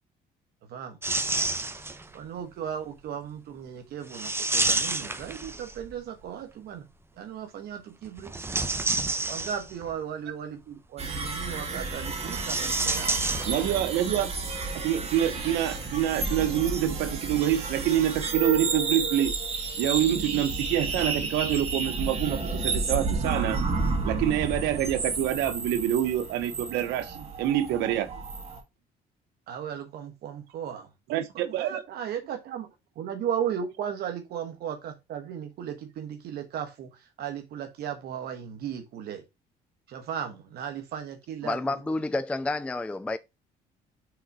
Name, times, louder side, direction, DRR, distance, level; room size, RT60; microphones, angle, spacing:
sound 1, 1.0-2.1 4.1-5.9 8.2-9.9 12.2-14.0 14.2-14.3 15.3-15.4, right 2 dB, 15° right, 0.9 m, -29 dB
voice 1, 2.1-6.8 7.2-8.3 9.3-13.8 29.5-32.7 32.9-39.2 39.9-42.0, right 8 dB, 70° right, 1.2 m, -36 dB
sound 2, 11.0-28.6, right 3 dB, 35° right, 2.2 m, -31 dB
voice 2, 13.5-14.3 14.7-19.3 19.8-23.6 24.0-28.1 31.1-31.8, right 11 dB, 90° right, 0.9 m, -26 dB
voice 3, 41.4-43.2, left 2 dB, 5° left, 0.4 m, -29 dB
6.4 x 3.8 x 4.7 m
cardioid pair, 110°, 17 cm